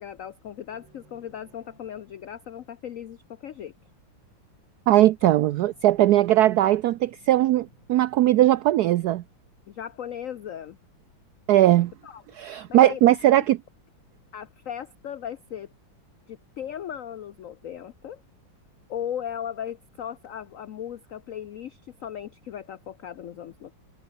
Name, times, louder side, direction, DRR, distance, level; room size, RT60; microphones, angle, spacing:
voice 1, 0.0-3.7 9.7-10.8 11.7-12.2 12.7-13.2 14.3-15.7 16.3-18.2 18.9-23.7, left 9 dB, 85° left, 0.7 m, -37 dB
sound 1, 0.7-2.9 5.2-10.2, right 2 dB, 65° right, 8.7 m, -59 dB
voice 2, 4.9-9.2 11.5-11.9 12.3-13.6, right 14 dB, 85° right, 0.8 m, -19 dB
omnidirectional pair, 2.2 m